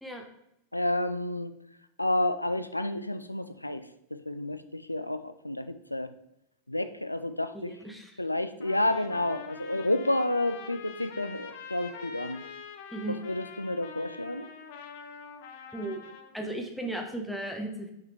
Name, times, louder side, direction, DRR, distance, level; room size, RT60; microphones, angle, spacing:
voice 1, 0.7-1.5 2.0-3.8 4.1-6.1 6.7-7.7 8.2-12.4 13.2-14.5, left 1 dB, 85° left, 11 dB, 0.4 m, -30 dB
voice 2, 7.5-8.2 12.9-13.2 15.7-16.0 16.3-17.9, right 1 dB, ahead, 3 dB, 1.1 m, -36 dB
Trumpet, 8.6-16.3, left 6 dB, 50° left, 0.7 m, -45 dB
5.7 x 5.5 x 3.6 m, 0.82 s
figure-of-eight pair, 90°, 0 cm